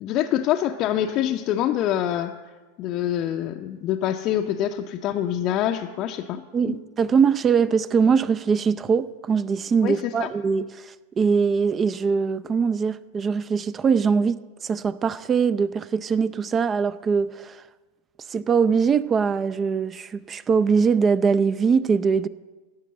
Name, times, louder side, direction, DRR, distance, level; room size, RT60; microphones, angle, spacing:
voice 1, 0.0-2.3 2.8-6.8 9.8-10.3, left 11 dB, 40° left, 0.6 m, -25 dB
voice 2, 6.5-14.4 14.6-17.6 18.3-22.3, right 6 dB, 25° right, 0.5 m, -22 dB
16.0 x 6.7 x 7.6 m
figure-of-eight pair, 90°, 0 cm